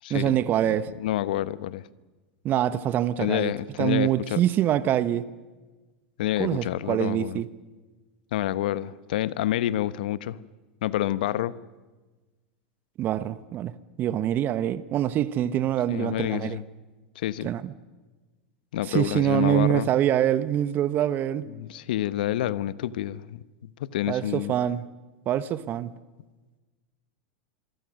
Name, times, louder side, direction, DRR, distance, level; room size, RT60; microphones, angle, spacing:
voice 1, 0.1-0.9 2.4-3.5 3.8-5.3 6.4-7.5 13.0-13.7 14.0-16.6 17.4-17.7 18.8-21.4 24.1-24.9 25.3-25.9, right 11 dB, 40° right, 1.1 m, -25 dB
voice 2, 1.0-1.8 3.2-4.4 6.2-7.4 8.3-10.4 10.8-11.5 15.9-16.6 17.2-17.5 18.7-19.9 21.6-23.4 23.8-24.5, left 13 dB, 70° left, 0.9 m, -28 dB
27.0 x 23.0 x 6.5 m
hypercardioid pair, 95°, 5 cm